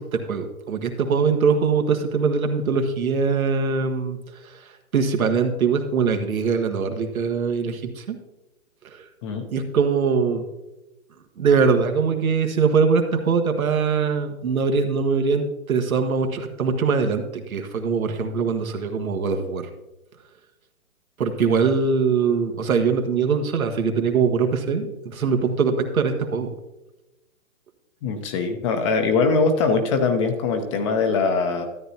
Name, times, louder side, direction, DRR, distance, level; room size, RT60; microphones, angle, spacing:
voice 1, 0.0-4.2 4.4-8.2 8.8-9.0 9.5-10.4 11.4-19.7 21.2-26.5, right 5 dB, 80° right, 5 dB, 1.5 m, -22 dB
voice 2, 28.0-31.6, left 4 dB, 20° left, 6 dB, 0.7 m, -22 dB
13.0 x 9.1 x 2.8 m, 0.99 s
hypercardioid pair, 145°, 42 cm